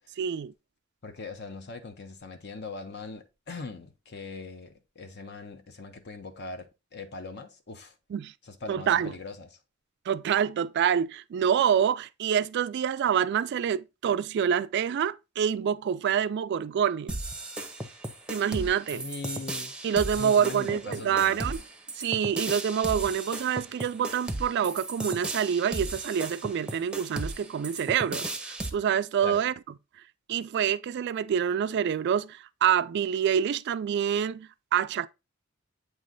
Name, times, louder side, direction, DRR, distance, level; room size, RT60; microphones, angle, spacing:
voice 1, 0.2-0.5 8.1-8.3 8.7-9.1 10.1-17.1 18.3-19.0 19.8-21.6 21.9-29.5 30.3-35.1, right 8 dB, 55° right, 0.3 m, -26 dB
voice 2, 1.0-7.9 8.4-9.6 18.9-19.7 20.1-21.4 29.2-29.4, left 3 dB, 55° left, 0.9 m, -41 dB
sound 1, 17.1-28.7, right 2 dB, 5° right, 0.7 m, -35 dB
8.2 x 3.2 x 3.8 m
head